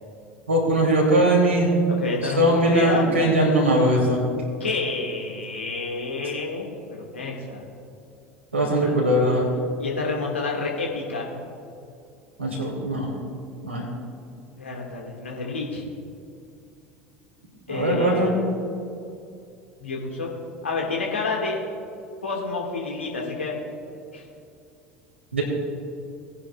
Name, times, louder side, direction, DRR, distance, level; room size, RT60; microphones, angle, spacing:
voice 1, 0.5-1.7 2.4-4.2 8.5-9.4 12.4-13.1 13.6-13.8 17.7-18.3 25.3-25.4, right 1 dB, 85° right, -2 dB, 3.0 m, -20 dB
voice 2, 1.9-3.1 4.6-7.6 8.8-8.9 9.8-11.3 14.6-15.8 17.7-18.4 19.8-20.3 20.6-21.6 22.2-23.5 24.1-24.2, left 3 dB, 80° left, -1 dB, 2.0 m, -29 dB
19.5 x 9.8 x 2.5 m, 2.5 s
figure-of-eight pair, 70°, 7 cm